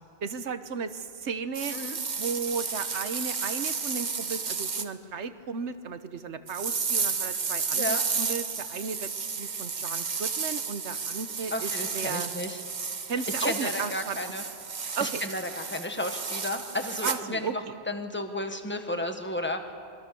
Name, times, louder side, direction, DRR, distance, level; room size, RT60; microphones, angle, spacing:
voice 1, 0.2-1.8 2.2-9.1 9.4-12.3 13.1-14.2 15.0-15.2 17.0-17.6, right 5 dB, 85° right, 11 dB, 1.3 m, -35 dB
sound 1, 1.5-4.9 6.5-17.2, right 5 dB, 45° right, 1.1 m, -32 dB
voice 2, 11.5-12.6 13.4-14.4 14.8-19.7, left 1 dB, 10° left, 6 dB, 1.5 m, -33 dB
26.0 x 21.0 x 7.0 m, 2.4 s
omnidirectional pair, 1.1 m